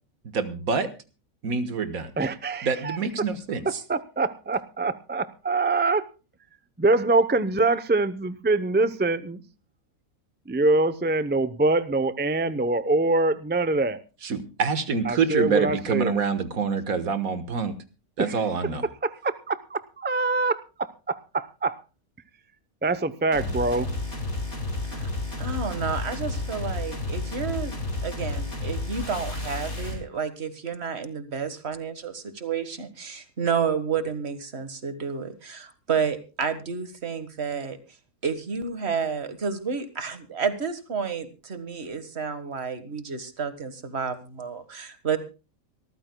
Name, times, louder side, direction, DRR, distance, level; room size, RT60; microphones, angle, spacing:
voice 1, 0.3-0.9 1.4-2.2 2.6-3.8 14.2-17.8 18.2-18.9, right 5 dB, 75° right, 10 dB, 1.8 m, -26 dB
voice 2, 2.2-3.0 3.9-6.0 6.8-9.4 10.5-14.0 15.1-16.1 19.0-21.8 22.8-23.9, right 2 dB, 15° right, 13 dB, 0.4 m, -24 dB
sound 1, 23.3-30.0, left 2 dB, 75° left, 5.2 m, -31 dB
voice 3, 25.4-27.8 28.0-37.8 38.2-45.2, right 6 dB, 45° right, 10 dB, 1.8 m, -30 dB
25.0 x 14.0 x 2.3 m, 0.32 s
omnidirectional pair, 1.5 m